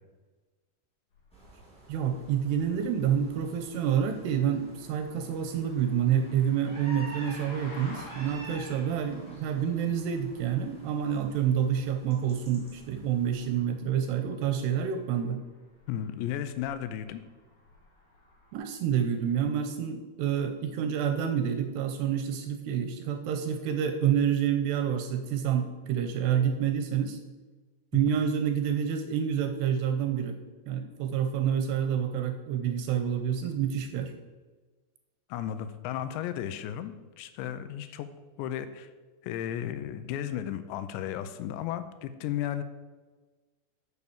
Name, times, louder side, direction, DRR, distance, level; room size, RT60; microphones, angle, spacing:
sound 1, 1.1-18.6, left 1 dB, 50° left, 3.4 m, -53 dB
sound 2, 1.3-13.6, right 1 dB, ahead, 2.2 m, -50 dB
voice 1, 1.9-15.4 18.5-27.2 27.9-30.4 30.7-34.1, right 8 dB, 80° right, 7 dB, 2.7 m, -28 dB
voice 2, 15.9-17.2 35.3-38.1 38.4-38.9 39.2-42.6, left 10 dB, 85° left, 11 dB, 2.9 m, -34 dB
9.4 x 7.0 x 7.0 m, 1.3 s
omnidirectional pair, 5.0 m